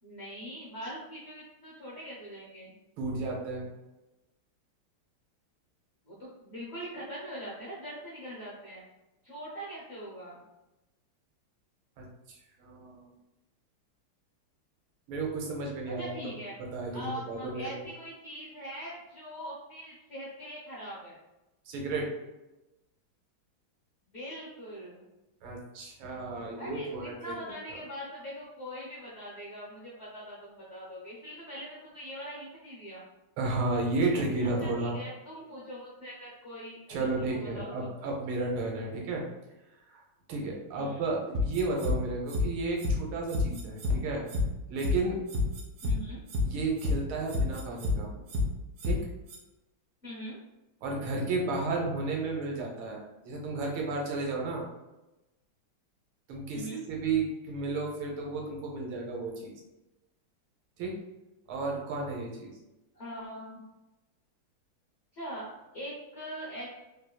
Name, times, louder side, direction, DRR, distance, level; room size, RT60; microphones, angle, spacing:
voice 1, 0.0-2.7 6.1-8.8 9.2-10.4 16.0-16.6 16.9-21.2 24.1-25.0 26.5-33.0 34.6-37.9 40.8-41.0 45.8-46.2 50.0-50.4 56.5-56.8 62.9-63.6 65.1-66.7, equal, 55° left, -7 dB, 0.7 m, -42 dB
voice 2, 3.0-3.7 12.0-13.1 15.1-16.1 16.6-17.9 21.7-22.1 25.4-27.3 27.7-27.8 33.4-35.0 36.9-39.2 39.9-40.0 40.3-44.2 44.7-45.2 46.4-48.2 48.8-49.0 50.8-54.7 56.3-59.5 60.8-60.9 61.5-62.5, right 3 dB, 90° right, 0 dB, 1.6 m, -33 dB
sound 1, 41.3-41.9 42.3-42.4 42.8-42.9 43.3-43.9 44.3-44.4 44.8-44.9 45.3-45.9 46.3-46.4 46.8-46.9 47.3-47.9 48.3-48.4 48.8-48.9 49.3-49.4, left 3 dB, 70° right, 0.8 m, -28 dB
3.4 x 3.0 x 2.2 m, 0.99 s
omnidirectional pair, 2.2 m